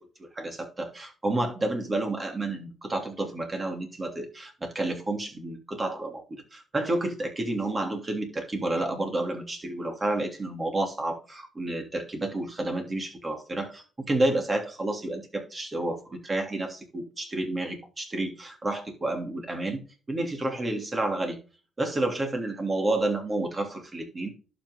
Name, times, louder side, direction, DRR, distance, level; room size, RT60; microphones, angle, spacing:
voice 1, 0.2-19.8 20.1-21.4 21.8-24.3, right 2 dB, 25° right, 3.2 m, -30 dB
11.5 x 6.2 x 3.9 m
cardioid pair, 90°, 0 cm